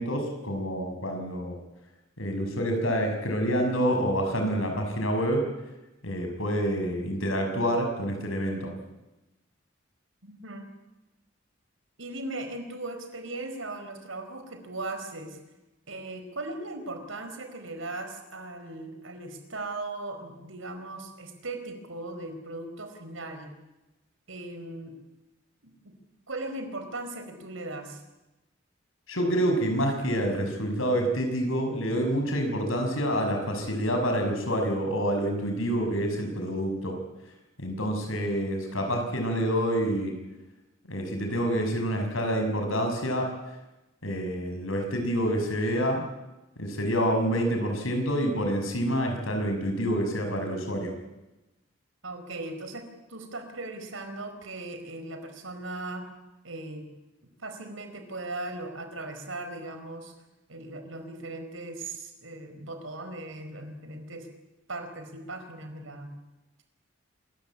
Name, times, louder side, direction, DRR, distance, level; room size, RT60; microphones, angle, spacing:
voice 1, 0.0-1.6 2.2-5.4 6.0-8.7 29.1-37.0 37.6-40.1 40.9-43.3 44.0-46.0 46.6-50.9, equal, 85° left, 4 dB, 6.3 m, -27 dB
voice 2, 10.2-10.7 12.0-15.4 15.9-23.5 24.3-24.9 25.6-26.0 26.3-28.0 52.0-56.1 56.4-56.9 57.4-60.1 60.5-64.3 64.7-66.1, right 2 dB, 80° right, 7 dB, 4.5 m, -38 dB
26.0 x 15.0 x 9.9 m, 1.0 s
head